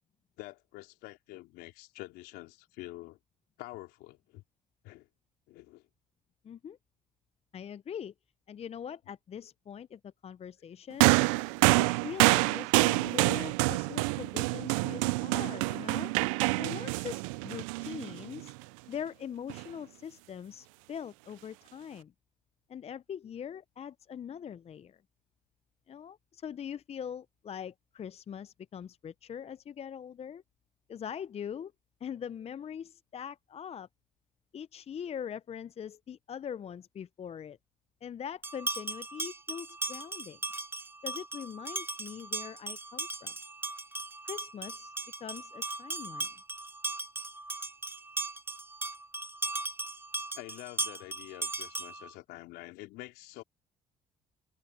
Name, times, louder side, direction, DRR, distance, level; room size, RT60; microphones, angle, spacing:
voice 1, 0.4-3.2 3.6-4.4 4.8-5.1 5.5-5.8 13.1-13.2 50.3-53.4, left 19 dB, 75° left, 3.9 m, -47 dB
voice 2, 6.4-6.8 7.5-8.1 8.5-11.1 11.6-16.1 16.6-18.5 18.9-22.1 22.7-25.0 25.9-30.4 30.9-31.7 32.0-33.9 34.5-37.6 38.0-40.4 41.0-43.3 44.2-44.9 45.2-46.3, left 8 dB, 40° left, 0.6 m, -42 dB
sound 1, 11.0-18.5 19.5-19.6, right 26 dB, 80° right, 0.5 m, -27 dB
sound 2, 38.4-52.1, right 2 dB, 15° right, 1.7 m, -37 dB
open air
hypercardioid pair, 60°, 17 cm